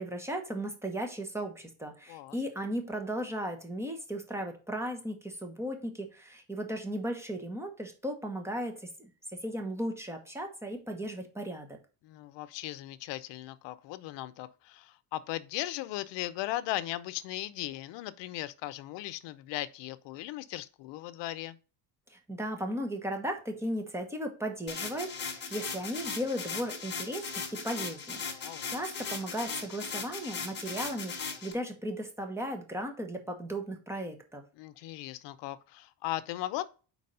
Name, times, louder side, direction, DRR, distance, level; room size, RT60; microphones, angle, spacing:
voice 1, 0.0-9.1 9.4-11.8 22.1-34.4, equal, 5° right, 1.2 m, -36 dB
voice 2, 12.0-21.6 28.2-28.7 34.6-36.7, left 15 dB, 75° left, 0.7 m, -38 dB
sound 1, 24.7-31.5, left 5 dB, 25° left, 1.4 m, -38 dB
4.7 x 4.1 x 5.4 m
cardioid pair, 125°, 43 cm